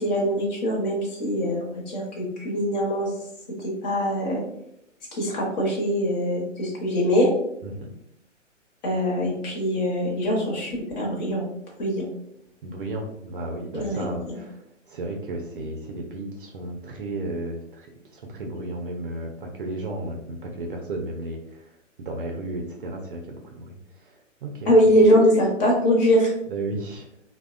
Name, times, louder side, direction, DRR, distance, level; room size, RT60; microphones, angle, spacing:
voice 1, 0.0-3.1 3.6-4.4 5.1-7.3 8.8-11.5 11.8-12.1 13.7-14.3 24.7-26.3, equal, 35° left, -2 dB, 0.8 m, -22 dB
voice 2, 7.6-7.9 12.6-21.7 22.0-25.0 26.5-27.1, right 2 dB, 45° right, 1 dB, 0.4 m, -34 dB
2.6 x 2.1 x 2.4 m, 0.77 s
hypercardioid pair, 130°, 38 cm